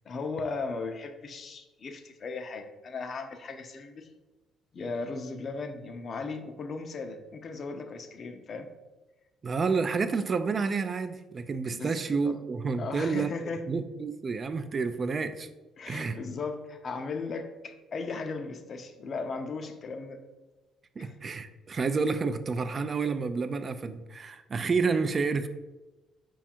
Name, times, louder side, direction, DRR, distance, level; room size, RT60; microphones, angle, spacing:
voice 1, 0.0-4.1 4.7-8.7 11.7-12.0 12.2-12.4 12.8-13.6 15.8-20.2 21.0-21.1, left 4 dB, 45° left, 7 dB, 0.5 m, -37 dB
voice 2, 9.4-15.5 15.9-16.2 21.0-25.5, right 4 dB, 40° right, 10 dB, 0.3 m, -29 dB
5.0 x 2.4 x 4.3 m, 1.1 s
cardioid pair, 90°, 0 cm